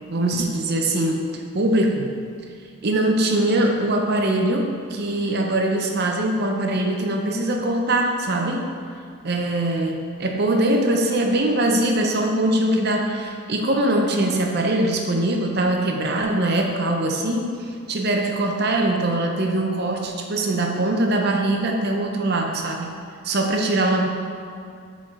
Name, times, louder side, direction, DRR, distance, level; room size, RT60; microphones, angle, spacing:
voice 1, 0.1-1.3 1.5-2.1 2.8-8.7 9.2-17.5 17.9-22.9 23.2-24.1, right 1 dB, 50° right, 2 dB, 0.6 m, -22 dB
8.7 x 3.8 x 3.2 m, 2.3 s
head